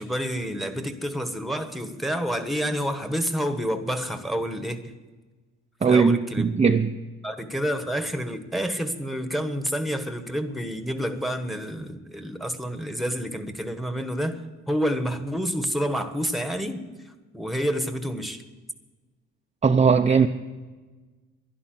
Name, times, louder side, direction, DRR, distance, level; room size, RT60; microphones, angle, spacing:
voice 1, 0.0-4.9 5.9-6.5 7.2-18.4, equal, ahead, 8 dB, 1.4 m, -29 dB
voice 2, 5.8-6.9 19.6-20.3, right 5 dB, 20° right, 5 dB, 0.6 m, -19 dB
11.5 x 11.0 x 7.9 m, 1.3 s
cardioid pair, 90°, 30 cm